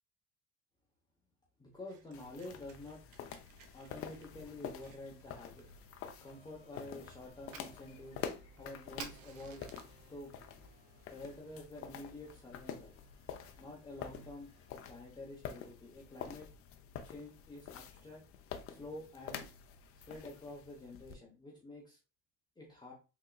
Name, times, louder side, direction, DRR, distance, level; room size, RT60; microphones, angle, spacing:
voice 1, 1.6-3.0 3.7-5.6 6.2-8.2 8.6-9.7 10.1-10.3 11.1-13.0 13.6-14.5 14.9-16.5 17.0-18.2 18.7-19.4 20.1-22.0 22.6-22.9, left 2 dB, 10° left, -3 dB, 0.8 m, -49 dB
Fire, 1.7-10.1, right 7 dB, 80° right, 0.7 m, -57 dB
sound 1, 2.1-21.1, left 8 dB, 45° left, 0.5 m, -48 dB
sound 2, 6.2-15.0, right 2 dB, 50° right, 1.0 m, -68 dB
3.5 x 2.9 x 2.2 m, 0.30 s
cardioid pair, 120°, 33 cm